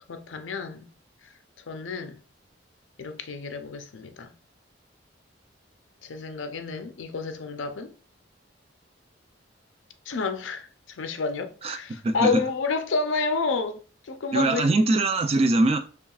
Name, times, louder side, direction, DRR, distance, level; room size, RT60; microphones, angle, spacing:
voice 1, 0.1-0.9 1.7-2.2 3.0-4.3 6.0-7.9 10.1-13.8 14.0-14.7, left 4 dB, 85° left, 0.6 m, -30 dB
voice 2, 14.3-15.8, right 2 dB, 30° right, 0.4 m, -22 dB
5.7 x 2.4 x 2.4 m
head